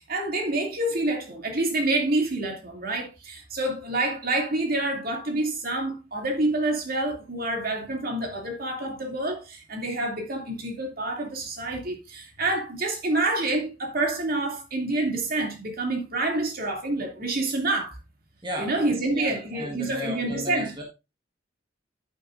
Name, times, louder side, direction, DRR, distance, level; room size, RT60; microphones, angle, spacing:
voice 1, 0.0-18.0 18.6-20.8, right 2 dB, 50° right, 2.7 m, -27 dB
voice 2, 18.4-20.8, right 1 dB, 25° right, 1.6 m, -35 dB
10.0 x 9.6 x 2.6 m
head